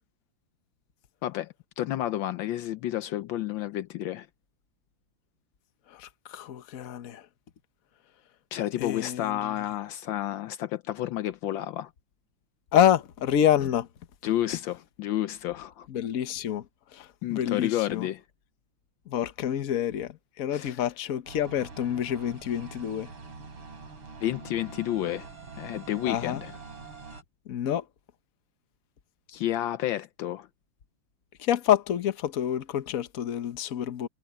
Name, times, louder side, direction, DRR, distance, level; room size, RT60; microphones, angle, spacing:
voice 1, 1.2-4.3 8.5-11.9 14.2-15.9 17.2-18.2 20.5-20.8 24.2-25.3 25.6-26.5 29.3-30.5, left 13 dB, 75° left, 1.4 m, -30 dB
voice 2, 5.9-7.3 8.8-9.5 12.7-13.9 15.9-18.1 19.1-23.1 26.0-26.4 27.5-27.9 31.4-34.1, left 10 dB, 50° left, 1.3 m, -27 dB
sound 1, 21.3-27.2, right 4 dB, 90° right, 4.6 m, -45 dB
omnidirectional pair, 2.2 m